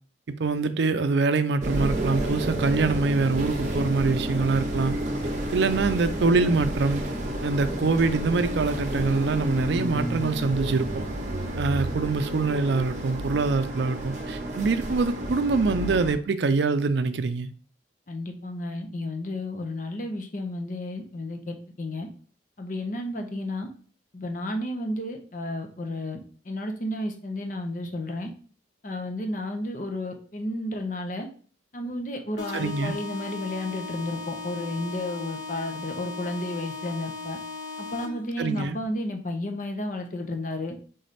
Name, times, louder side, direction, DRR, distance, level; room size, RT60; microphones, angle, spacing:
voice 1, 0.3-4.9 5.5-7.0 7.4-11.0 11.6-17.5 32.5-33.0 38.4-38.8, right 4 dB, 70° right, 0.4 m, -24 dB
sound 1, 1.6-16.1, right 1 dB, 40° right, 0.8 m, -30 dB
voice 2, 18.1-22.1 22.6-23.7 24.1-28.3 28.8-31.3 31.7-37.4 37.8-40.8, left 1 dB, 45° left, 0.7 m, -32 dB
sound 2, 32.4-38.4, left 4 dB, 75° left, 1.3 m, -37 dB
3.8 x 3.3 x 4.1 m
head